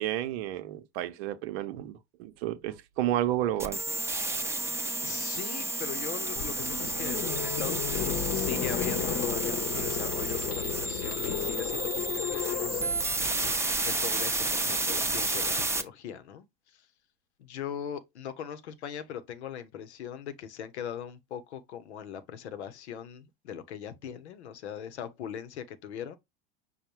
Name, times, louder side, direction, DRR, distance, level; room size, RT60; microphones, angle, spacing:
voice 1, 0.0-3.8, right 13 dB, 70° right, 0.7 m, -31 dB
sound 1, 3.6-15.8, right 2 dB, 10° right, 0.6 m, -31 dB
voice 2, 4.4-13.0 13.9-16.9 17.4-26.2, left 9 dB, 85° left, 0.7 m, -40 dB
sound 2, 6.4-13.5, left 10 dB, 50° left, 0.8 m, -33 dB
5.4 x 2.2 x 4.4 m
hypercardioid pair, 85°, 32 cm